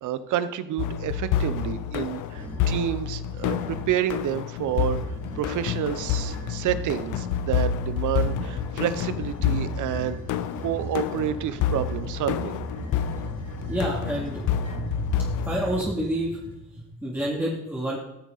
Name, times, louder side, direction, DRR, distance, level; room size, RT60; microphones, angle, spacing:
voice 1, 0.0-5.0 5.4-10.2 10.6-12.6, right 10 dB, 80° right, 13 dB, 0.8 m, -29 dB
sound 1, 0.8-15.8, left 8 dB, 85° left, 0.6 m, -29 dB
sound 2, 2.2-2.8 3.4-4.0 4.6-16.6, right 1 dB, 40° right, 4.1 m, -39 dB
voice 2, 13.7-14.5 14.8-15.0 15.4-16.4 16.8-18.0, right 1 dB, 5° right, -5 dB, 2.4 m, -28 dB
14.5 x 6.5 x 4.1 m, 0.84 s
cardioid pair, 90°, 30 cm